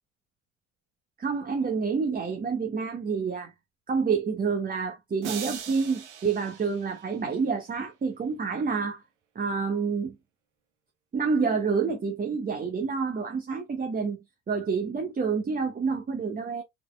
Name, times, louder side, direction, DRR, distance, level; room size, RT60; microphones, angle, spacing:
voice 1, 1.2-3.5 3.9-9.0 9.3-10.2 11.1-14.2 14.5-16.6, right 5 dB, 25° right, 1.1 m, -28 dB
sound 1, 5.2-7.5, right 8 dB, 70° right, 1.2 m, -40 dB
5.0 x 4.2 x 2.3 m
figure-of-eight pair, 55°, 36 cm